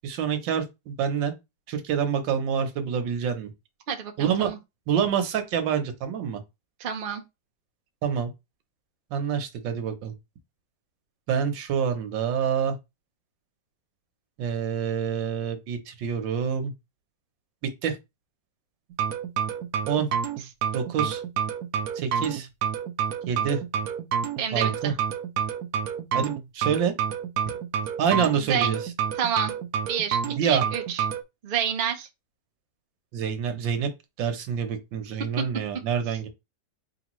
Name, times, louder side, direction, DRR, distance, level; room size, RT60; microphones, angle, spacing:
voice 1, 0.0-1.3 1.7-3.5 4.2-4.5 4.9-6.4 8.0-8.3 9.1-10.1 11.3-12.8 14.4-16.7 17.6-18.0 19.9-20.1 20.7-21.2 21.9-22.5 23.3-23.6 24.5-24.9 26.1-26.9 28.0-28.8 30.2-30.6 33.1-33.9 34.2-36.3, right 7 dB, 85° right, 1.7 m, -27 dB
voice 2, 3.9-4.6 6.8-7.2 24.4-24.9 28.4-28.7 29.2-29.5 29.9-31.0 31.4-32.1, right 8 dB, 50° right, 0.6 m, -29 dB
sound 1, 18.9-31.2, right 8 dB, 70° right, 0.9 m, -28 dB
4.6 x 3.5 x 3.0 m
omnidirectional pair, 2.0 m